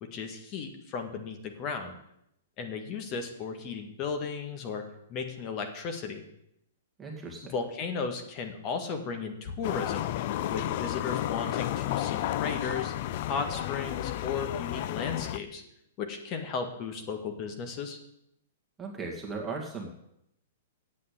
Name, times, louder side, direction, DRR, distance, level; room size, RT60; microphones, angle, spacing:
voice 1, 0.0-1.9 2.6-4.8 5.1-6.2 7.5-10.1 10.5-12.9 13.2-15.6 16.0-18.0, left 5 dB, 35° left, 5 dB, 1.9 m, -35 dB
voice 2, 7.0-7.5 18.8-19.9, right 4 dB, 10° right, -2 dB, 2.2 m, -37 dB
sound 1, 9.6-15.4, left 13 dB, 50° left, 0.5 m, -32 dB
8.4 x 7.6 x 8.5 m, 0.78 s
hypercardioid pair, 125°, 0 cm